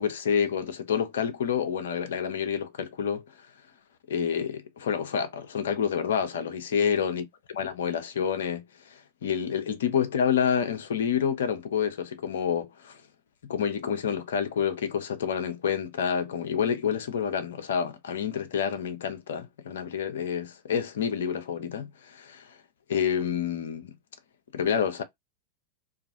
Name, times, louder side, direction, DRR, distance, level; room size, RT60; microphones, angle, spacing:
voice 1, 0.0-3.2 4.1-7.2 7.5-8.6 8.9-13.0 13.4-22.5 22.9-23.9 24.5-25.0, left 7 dB, 60° left, 0.5 m, -28 dB
2.4 x 2.4 x 2.6 m
figure-of-eight pair, 90°, 0 cm